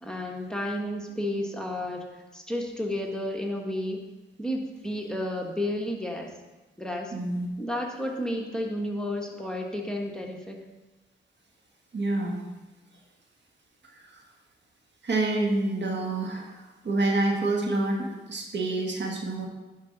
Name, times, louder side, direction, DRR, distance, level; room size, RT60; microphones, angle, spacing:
voice 1, 0.0-2.0 2.3-4.0 4.4-6.3 6.8-7.1 7.6-10.6, left 1 dB, 5° left, 1 dB, 1.5 m, -31 dB
voice 2, 7.1-7.5 11.9-12.4 14.1-14.2 15.0-16.6 16.8-19.5, right 2 dB, 60° right, 0 dB, 1.7 m, -27 dB
11.0 x 5.0 x 4.1 m, 1.1 s
cardioid pair, 50°, 21 cm